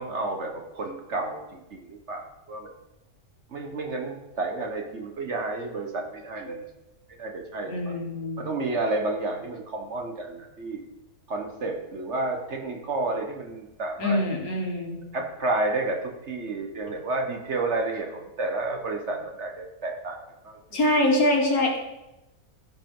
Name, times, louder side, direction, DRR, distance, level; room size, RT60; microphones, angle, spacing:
voice 1, 0.0-2.7 3.5-6.6 7.2-8.0 8.4-10.8 11.3-14.2 15.1-20.2 20.4-20.8, right 2 dB, 50° right, 2 dB, 1.4 m, -31 dB
voice 2, 7.7-8.4 14.0-15.0 20.7-21.8, left 1 dB, 70° left, 0 dB, 2.0 m, -24 dB
14.5 x 5.0 x 3.8 m, 0.96 s
omnidirectional pair, 1.6 m